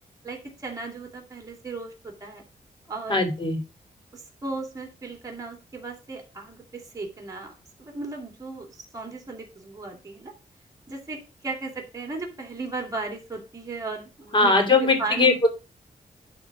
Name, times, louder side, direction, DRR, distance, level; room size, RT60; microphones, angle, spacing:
voice 1, 0.2-2.4 2.9-3.2 4.1-7.5 7.8-10.3 10.9-15.4, right 3 dB, 25° right, 2 dB, 2.6 m, -36 dB
voice 2, 3.1-3.6 14.3-15.3, left 3 dB, 35° left, 4 dB, 2.9 m, -20 dB
11.5 x 3.9 x 6.0 m, 0.30 s
wide cardioid pair, 150°, 15 cm